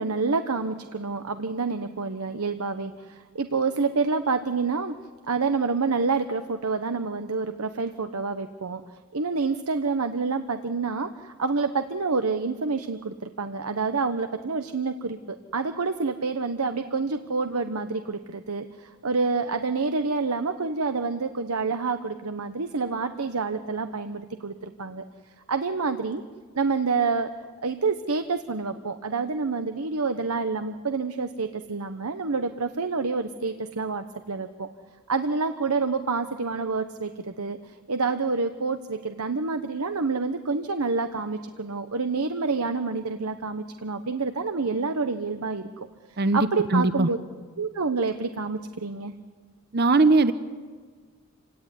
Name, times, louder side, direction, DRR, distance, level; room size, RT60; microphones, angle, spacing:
voice 1, 0.0-5.0 5.3-8.8 9.1-25.0 25.5-26.2 26.5-27.3 27.6-34.7 35.1-45.7 46.3-47.2 47.6-49.1, right 4 dB, 85° right, 8 dB, 1.0 m, -28 dB
voice 2, 46.2-47.1 49.7-50.3, right 2 dB, 45° right, 12 dB, 0.9 m, -20 dB
27.5 x 18.0 x 10.0 m, 1.5 s
head